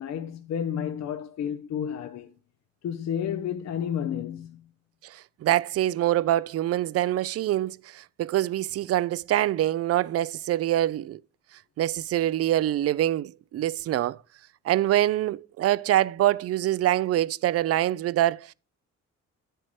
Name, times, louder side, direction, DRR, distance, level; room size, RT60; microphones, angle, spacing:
voice 1, 0.0-2.3 2.8-4.7, left 8 dB, 60° left, 0.7 m, -31 dB
voice 2, 5.0-11.2 11.8-14.2 14.7-18.4, right 13 dB, 55° right, 0.4 m, -25 dB
9.9 x 7.7 x 3.1 m
cardioid pair, 90°, 30 cm